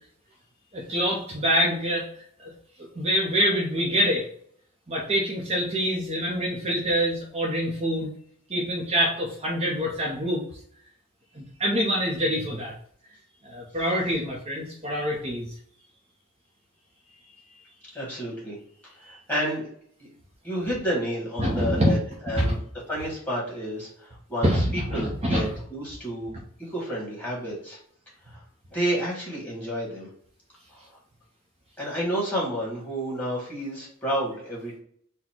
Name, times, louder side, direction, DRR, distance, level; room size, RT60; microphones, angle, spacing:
voice 1, 0.7-2.1 2.4-2.5 2.9-4.3 4.9-8.1 8.5-10.4 11.3-12.7 13.4-15.5 21.4-21.9 22.4-22.5 24.4-25.5, equal, 30° right, -3 dB, 0.7 m, -25 dB
voice 2, 17.9-18.6 18.8-19.7 20.4-22.0 22.2-22.6 22.9-26.3 26.6-27.8 28.3-28.4 28.7-30.1 31.8-34.8, equal, 10° left, -6 dB, 1.8 m, -30 dB
4.1 x 2.2 x 4.4 m, 0.62 s
head